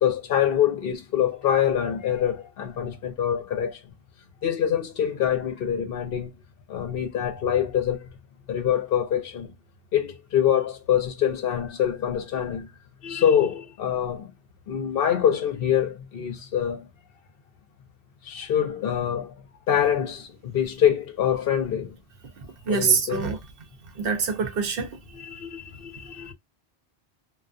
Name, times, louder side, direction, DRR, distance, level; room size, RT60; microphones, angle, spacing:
voice 1, 0.0-3.8 4.4-6.3 6.7-8.1 8.5-9.5 9.9-12.7 13.0-14.3 14.7-16.9 18.2-19.3 19.7-22.0 22.7-23.3 25.1-26.3, left 9 dB, 65° left, 0.7 m, -25 dB
voice 2, 22.7-23.4 24.0-24.9, right 5 dB, 60° right, 0.7 m, -24 dB
2.3 x 2.2 x 2.4 m
omnidirectional pair, 1.1 m